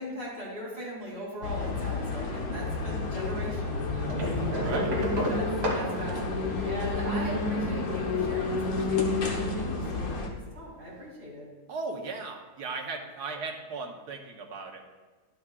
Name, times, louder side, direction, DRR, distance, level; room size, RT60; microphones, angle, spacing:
voice 1, 0.0-4.6 5.3-11.5, equal, 40° right, -6 dB, 3.2 m, -40 dB
sound 1, 1.4-10.3, left 3 dB, 65° left, 1.5 m, -30 dB
sound 2, 4.1-7.3 8.6-9.4 10.6-10.7 10.9-11.0, equal, 65° right, 2.2 m, -32 dB
voice 2, 4.5-5.0 11.7-14.8, right 4 dB, 85° right, 3 dB, 1.6 m, -36 dB
11.5 x 8.6 x 2.4 m, 1.3 s
omnidirectional pair, 1.7 m